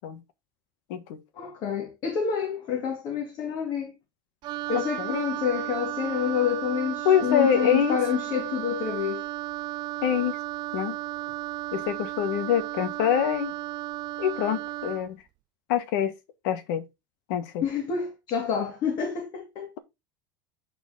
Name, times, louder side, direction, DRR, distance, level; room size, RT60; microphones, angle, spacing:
voice 1, 1.3-3.9 4.7-9.2 17.6-19.7, left 7 dB, 45° left, 2.5 m, -28 dB
Wind instrument woodwind instrument, 4.4-15.1, right 16 dB, 40° right, 0.4 m, -34 dB
voice 2, 7.0-8.0 10.0-10.4 10.7-11.0 11.7-13.5 14.2-15.2 15.7-16.1 16.4-16.8 17.3-17.6, left 9 dB, 65° left, 1.5 m, -25 dB
10.0 x 4.4 x 3.8 m
supercardioid pair, 125°, 11 cm